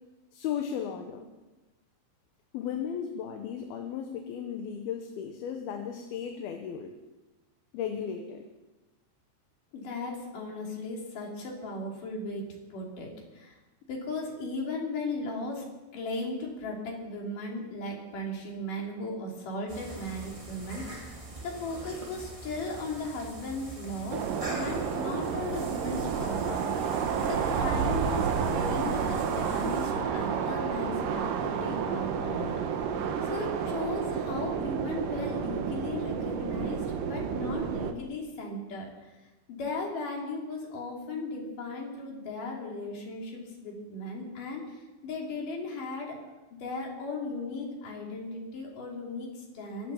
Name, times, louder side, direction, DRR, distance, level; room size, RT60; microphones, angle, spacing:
voice 1, 0.3-1.3 2.5-6.9 7.7-8.4, left 8 dB, 70° left, 5 dB, 2.7 m, -35 dB
voice 2, 9.7-13.6 13.9-15.7 15.9-27.0 27.2-32.6 33.2-38.9 39.5-46.2 46.6-49.9, left 2 dB, 50° left, -1 dB, 4.4 m, -37 dB
sound 1, 19.7-29.9, right 2 dB, 45° right, 0.4 m, -43 dB
sound 2, 24.1-37.9, right 7 dB, 65° right, 2.3 m, -30 dB
23.5 x 8.5 x 7.2 m, 1.1 s
omnidirectional pair, 4.9 m